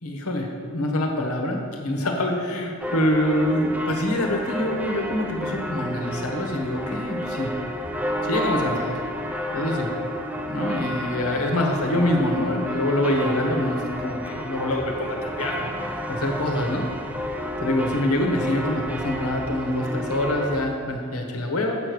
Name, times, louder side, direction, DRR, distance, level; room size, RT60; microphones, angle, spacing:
voice 1, 0.0-7.5 8.2-8.9 9.5-9.9 10.5-15.7 16.1-16.8 17.6-21.8, left 1 dB, 85° left, 2 dB, 1.3 m, -25 dB
sound 1, 2.8-20.7, equal, 5° right, 0.6 m, -31 dB
7.7 x 6.5 x 6.3 m, 2.3 s
head